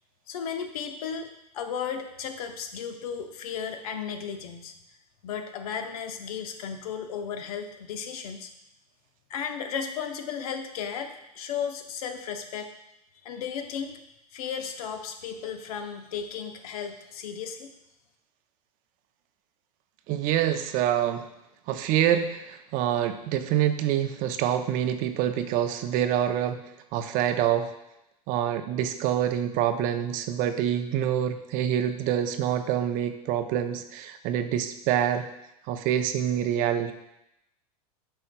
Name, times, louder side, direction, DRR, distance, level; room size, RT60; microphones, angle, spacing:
voice 1, 0.3-4.7 5.2-8.5 9.3-12.7 13.2-14.0 14.3-17.7, left 7 dB, 65° left, 6 dB, 0.8 m, -35 dB
voice 2, 20.1-21.3 21.7-26.6 26.9-27.7 28.3-35.3 35.7-36.9, right 10 dB, 45° right, 9 dB, 0.6 m, -26 dB
8.8 x 5.4 x 2.2 m, 0.85 s
hypercardioid pair, 105°, 20 cm